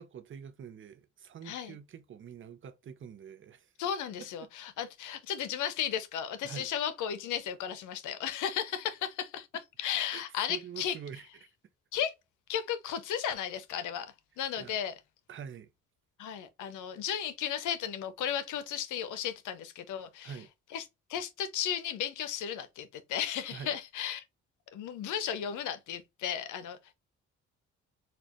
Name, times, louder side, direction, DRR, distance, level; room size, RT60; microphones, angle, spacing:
voice 1, 0.0-3.7 4.2-4.5 6.4-6.7 10.1-11.3 14.6-14.8 15.3-15.7 20.2-20.5 23.5-23.8, right 8 dB, 40° right, 0.6 m, -45 dB
voice 2, 1.4-1.8 3.8-11.0 11.9-12.1 12.5-14.9 16.2-20.4 20.7-24.2 24.7-26.9, left 9 dB, 80° left, 0.7 m, -35 dB
4.2 x 2.4 x 2.9 m
cardioid pair, 90°, 30 cm